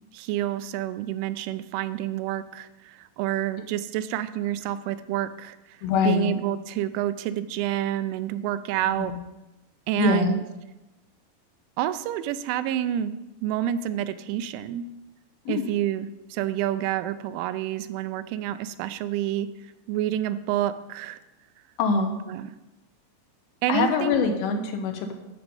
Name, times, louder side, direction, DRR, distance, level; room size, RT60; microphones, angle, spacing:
voice 1, 0.1-9.1 9.9-10.4 11.8-13.2 13.4-14.9 15.5-19.5 19.9-21.2 22.3-22.5 23.6-24.2, right 12 dB, 85° right, 12 dB, 3.0 m, -28 dB
voice 2, 5.8-6.4 8.9-9.2 10.0-10.4 15.5-15.7 21.8-22.1 23.7-25.1, left 5 dB, 75° left, 4 dB, 2.9 m, -24 dB
11.0 x 7.1 x 5.3 m, 1.0 s
omnidirectional pair, 5.6 m